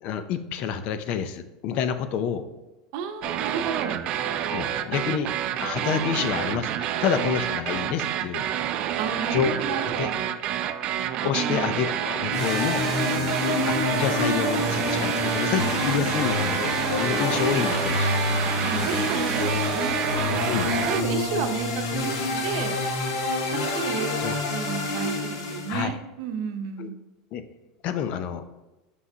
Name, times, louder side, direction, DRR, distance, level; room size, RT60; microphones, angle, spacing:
voice 1, 0.0-2.4 4.5-5.3 5.6-8.4 9.3-10.1 11.2-12.9 13.7-18.2 20.5-20.7 24.2-24.4 25.7-26.0 26.8-26.9 27.3-27.4 27.8-28.4, left 8 dB, 50° left, 11 dB, 0.5 m, -28 dB
voice 2, 2.9-4.0 9.0-10.1 11.3-11.7 18.6-20.0 20.8-22.8 23.5-24.1 24.5-26.9, right 6 dB, 65° right, 6 dB, 0.8 m, -32 dB
sound 1, 3.2-21.0, right 10 dB, 45° right, 0.4 m, -28 dB
sound 2, 12.3-25.8, left 2 dB, 90° left, 1.3 m, -27 dB
6.2 x 5.7 x 2.8 m, 1.0 s
supercardioid pair, 125°, 2 cm